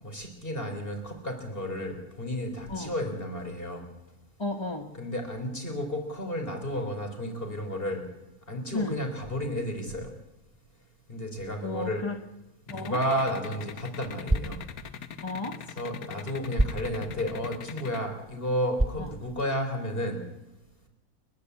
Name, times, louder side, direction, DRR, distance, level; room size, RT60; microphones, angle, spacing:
voice 1, 0.0-3.8 5.0-8.0 8.5-10.1 11.1-12.0 12.7-14.6 15.8-20.2, equal, 40° left, 4 dB, 4.5 m, -32 dB
voice 2, 4.4-4.9 8.7-9.0 11.6-12.2 12.7-13.0 15.2-15.6 19.0-19.1, left 2 dB, 20° left, 4 dB, 1.2 m, -33 dB
sound 1, 12.7-18.0, left 8 dB, 75° left, 1.5 m, -40 dB
sound 2, 13.0-20.0, right 1 dB, 10° right, 0.7 m, -34 dB
30.0 x 11.5 x 8.3 m, 0.98 s
omnidirectional pair, 1.6 m